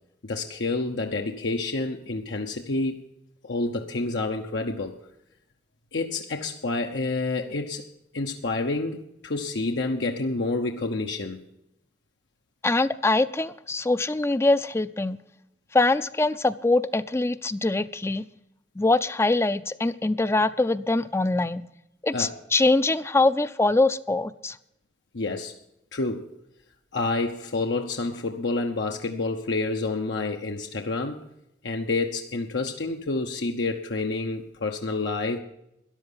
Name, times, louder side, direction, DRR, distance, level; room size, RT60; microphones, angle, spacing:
voice 1, 0.2-3.0 3.4-4.9 5.9-7.9 8.1-11.4 22.1-22.3 25.1-25.5 25.9-26.3 26.9-31.2 31.6-35.4, left 3 dB, 80° left, 3 dB, 0.9 m, -28 dB
voice 2, 12.6-15.2 15.7-18.2 18.8-21.6 22.0-24.6, left 2 dB, 15° left, 14 dB, 0.4 m, -23 dB
13.5 x 10.5 x 5.6 m, 0.82 s
head